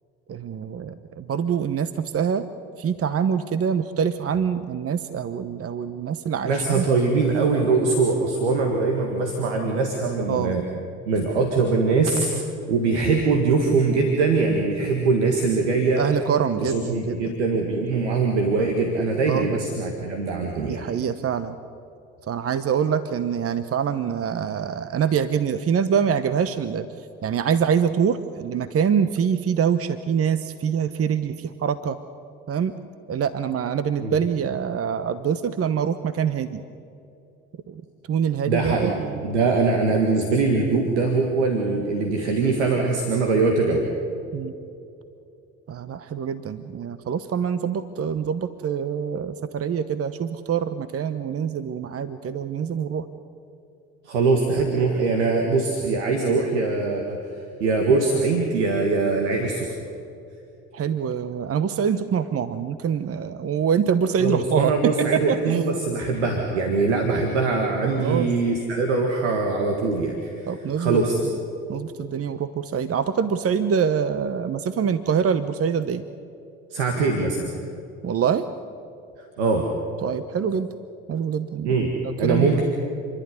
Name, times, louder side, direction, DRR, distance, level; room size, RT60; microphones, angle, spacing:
voice 1, 0.3-2.5 2.8-6.8 10.3-10.6 16.0-17.2 19.3-19.5 20.7-21.6 22.3-32.0 32.5-32.7 33.1-36.6 37.7-37.8 38.1-39.2 44.3-44.5 45.7-53.0 60.7-65.6 67.9-68.3 70.5-71.0 71.7-76.0 78.0-78.5 80.0-80.7 81.1-82.6, right 7 dB, 40° right, 12 dB, 1.0 m, -25 dB
voice 2, 6.4-10.6 11.1-12.3 12.7-16.0 16.6-20.8 34.0-34.2 38.5-43.9 54.0-59.7 64.2-70.5 70.8-71.2 76.7-77.5 79.4-79.7 81.6-81.9 82.2-82.6, right 4 dB, 85° right, 2 dB, 1.9 m, -22 dB
29.5 x 11.5 x 9.7 m, 2.6 s
hypercardioid pair, 55°, 34 cm